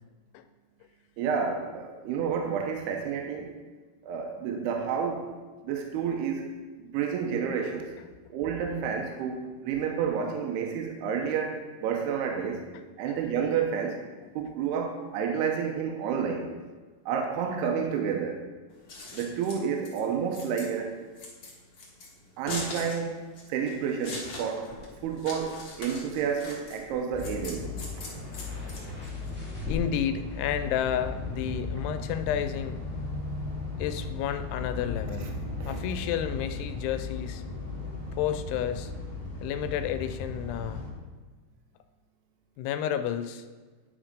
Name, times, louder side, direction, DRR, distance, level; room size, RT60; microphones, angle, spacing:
voice 1, 1.2-3.6 4.0-5.3 5.6-6.5 6.8-7.9 8.3-12.7 13.0-14.0 14.4-16.5 17.1-18.4 19.1-21.0 22.4-23.2 23.5-24.8 25.0-27.7 35.6-36.0, right 7 dB, 80° right, 3 dB, 2.7 m, -30 dB
Scissors, 18.7-29.3, left 2 dB, 50° left, 1.4 m, -41 dB
sound 1, 24.5-31.0, left 4 dB, 10° right, 0.5 m, -44 dB
sound 2, 27.1-40.9, left 3 dB, 10° left, 1.9 m, -36 dB
voice 2, 29.7-32.8 33.8-35.3 35.7-37.4 38.2-38.9 39.4-40.8 42.6-43.4, left 9 dB, 85° left, 10 dB, 2.6 m, -31 dB
10.0 x 4.4 x 5.1 m, 1.3 s
omnidirectional pair, 4.6 m